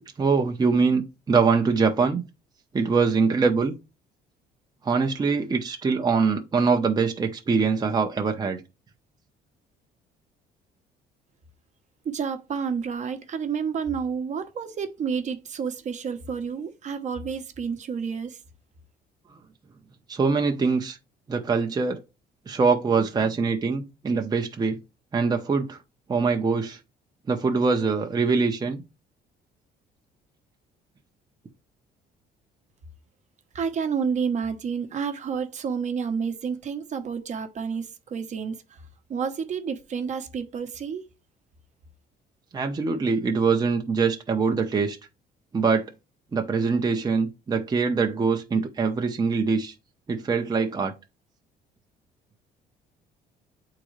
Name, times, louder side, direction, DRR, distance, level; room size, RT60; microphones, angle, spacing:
voice 1, 0.2-2.2 2.7-3.7 4.8-8.6 20.1-21.0 21.3-22.0 22.5-24.8 25.1-25.8 26.1-26.8 27.3-28.8 42.5-45.0 45.5-45.9 46.3-49.7 50.1-50.9, right 4 dB, 25° right, 0.9 m, -23 dB
voice 2, 12.0-18.4 33.5-38.6 39.1-41.0, right 6 dB, 45° right, 1.1 m, -30 dB
8.9 x 3.8 x 3.2 m
cardioid pair, 110°, 17 cm